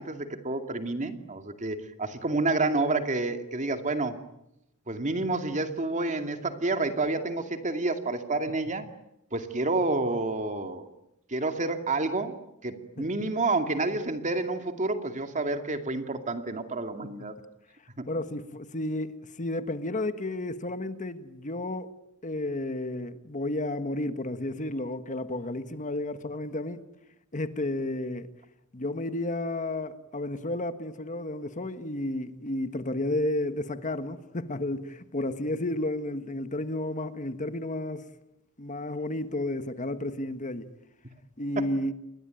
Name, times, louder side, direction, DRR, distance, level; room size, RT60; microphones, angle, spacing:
voice 1, 0.0-4.2 4.9-8.9 9.3-10.9 11.3-12.4 12.6-17.3 18.0-18.1, right 2 dB, 35° right, 2.4 m, -29 dB
voice 2, 18.1-21.9 22.2-26.8 27.3-28.3 28.7-38.0 38.6-40.7 41.4-41.9, left 1 dB, 35° left, 1.5 m, -32 dB
30.0 x 21.5 x 9.2 m
head